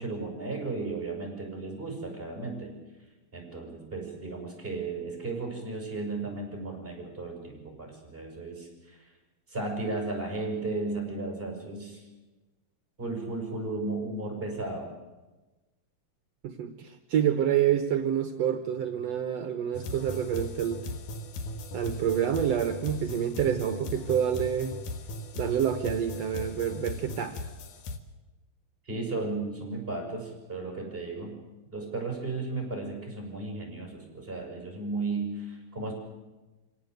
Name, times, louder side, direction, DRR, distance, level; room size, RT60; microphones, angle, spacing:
voice 1, 0.0-2.7 3.3-9.1 9.5-12.0 13.0-14.9 28.8-31.3 31.7-35.9, right 3 dB, 15° right, 1 dB, 6.6 m, -35 dB
voice 2, 16.4-20.9 21.7-24.8 25.4-27.4, right 9 dB, 65° right, 8 dB, 2.1 m, -28 dB
sound 1, 19.7-28.0, left 1 dB, 90° left, 3.0 m, -38 dB
27.0 x 18.0 x 8.0 m, 1.2 s
omnidirectional pair, 3.4 m